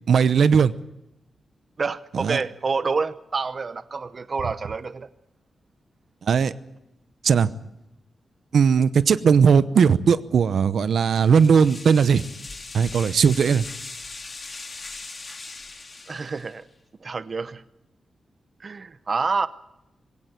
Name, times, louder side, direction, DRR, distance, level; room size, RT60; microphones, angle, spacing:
voice 1, 0.1-0.7 2.1-2.4 6.2-6.5 7.2-7.5 8.5-12.2 12.7-13.6, right 6 dB, 70° right, 14 dB, 0.8 m, -18 dB
voice 2, 1.8-5.1 16.1-16.6 17.0-17.6 18.6-19.5, right 4 dB, 40° right, 13 dB, 0.7 m, -28 dB
sound 1, 11.0-16.6, left 3 dB, 35° left, 2.4 m, -39 dB
21.0 x 17.0 x 9.3 m, 0.89 s
wide cardioid pair, 135°, 0 cm